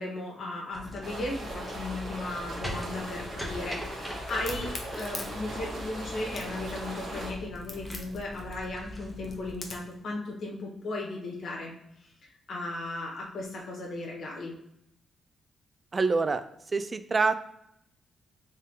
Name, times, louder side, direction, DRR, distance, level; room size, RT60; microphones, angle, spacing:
voice 1, 0.0-11.7 12.2-14.5, left 2 dB, 65° left, -2 dB, 1.2 m, -36 dB
sound 1, 0.7-9.5, left 1 dB, ahead, 0.8 m, -41 dB
sound 2, 1.0-7.3, right 1 dB, 60° right, 1.3 m, -39 dB
Crack, 4.3-10.0, left 3 dB, 40° left, 0.7 m, -42 dB
voice 2, 15.9-16.4 16.7-17.3, right 4 dB, 30° right, 11 dB, 0.3 m, -25 dB
3.6 x 3.6 x 2.8 m, 0.78 s
cardioid pair, 120°, 0 cm